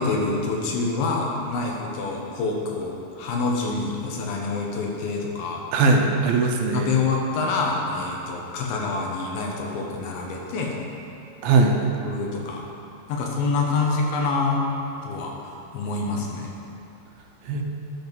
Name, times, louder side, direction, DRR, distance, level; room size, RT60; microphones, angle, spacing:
voice 1, 0.0-5.6 6.7-10.8 12.0-12.6 13.1-14.6 15.0-16.5, left 3 dB, 90° left, -1 dB, 3.0 m, -26 dB
voice 2, 5.7-6.9 11.4-11.8 17.4-17.6, right 3 dB, 85° right, 2 dB, 2.7 m, -19 dB
11.0 x 5.5 x 6.1 m, 2.7 s
omnidirectional pair, 4.1 m